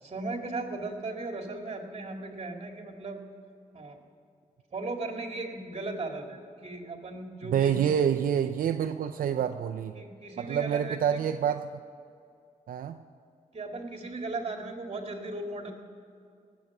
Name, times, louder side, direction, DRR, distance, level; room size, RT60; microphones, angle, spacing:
voice 1, 0.0-3.2 3.7-4.0 4.7-8.1 9.3-9.4 9.9-11.2 13.5-15.7, right 2 dB, 45° right, 3 dB, 2.1 m, -37 dB
voice 2, 7.5-10.0 10.4-11.6 12.7-13.0, right 8 dB, 90° right, 8 dB, 0.4 m, -27 dB
18.0 x 7.9 x 6.0 m, 2.4 s
cardioid pair, 75°, 14 cm